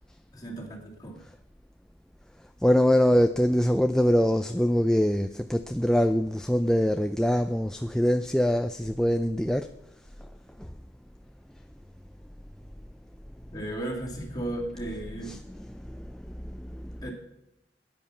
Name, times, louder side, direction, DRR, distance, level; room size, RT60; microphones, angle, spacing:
voice 1, 0.3-1.2 13.5-15.4 17.0-17.1, right 1 dB, 20° left, -1 dB, 2.8 m, -35 dB
voice 2, 2.6-9.7 10.6-10.7 14.8-17.1, equal, 5° left, 8 dB, 0.4 m, -24 dB
15.5 x 9.6 x 5.7 m, 0.93 s
head